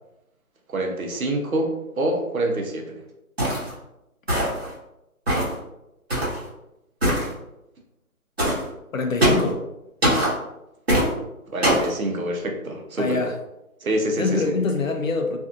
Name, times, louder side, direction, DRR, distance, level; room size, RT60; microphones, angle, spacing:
voice 1, 0.7-3.0 11.5-13.2 13.8-14.8, right 1 dB, 70° right, 2 dB, 0.7 m, -26 dB
sound 1, 3.4-3.7 4.3-4.7 5.3-5.6 6.1-6.4 7.0-7.3 8.4-8.6 9.2-9.5 10.0-10.3 10.9-11.1 11.6-11.9, right 1 dB, 45° right, 1.0 m, -21 dB
voice 2, 8.9-9.7 13.0-13.4 14.2-15.4, left 4 dB, 65° left, 5 dB, 0.5 m, -24 dB
2.5 x 2.5 x 2.4 m, 0.90 s
figure-of-eight pair, 175°, 44 cm